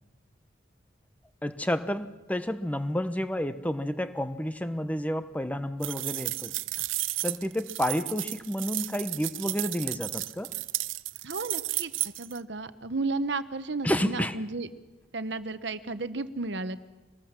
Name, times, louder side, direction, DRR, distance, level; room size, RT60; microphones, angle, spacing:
voice 1, 1.4-6.5 7.2-10.5 13.8-14.4, equal, 10° left, 10 dB, 0.9 m, -30 dB
sound 1, 5.8-12.4, right 17 dB, 85° right, 0.7 m, -33 dB
voice 2, 11.2-11.9 12.2-14.7 15.1-16.8, right 3 dB, 60° right, 13 dB, 1.0 m, -33 dB
24.5 x 19.5 x 7.4 m, 1.1 s
head